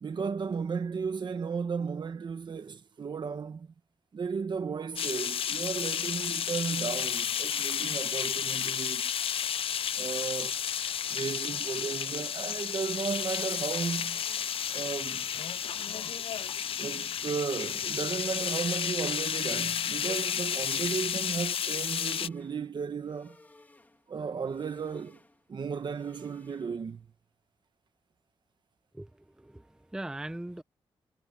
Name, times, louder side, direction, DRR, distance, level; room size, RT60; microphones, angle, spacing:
voice 1, 0.0-3.7 4.1-9.0 9.9-10.6 11.1-14.2 14.7-15.3 16.8-23.4 24.1-25.2 25.5-27.1, right 5 dB, 50° right, 1.5 m, -34 dB
sound 1, 5.0-22.3, left 8 dB, 65° left, 0.5 m, -32 dB
sound 2, 21.6-27.0, left 2 dB, 15° left, 2.5 m, -59 dB
voice 2, 28.9-30.6, right 1 dB, 5° right, 0.5 m, -40 dB
wide cardioid pair, 155°, 10 cm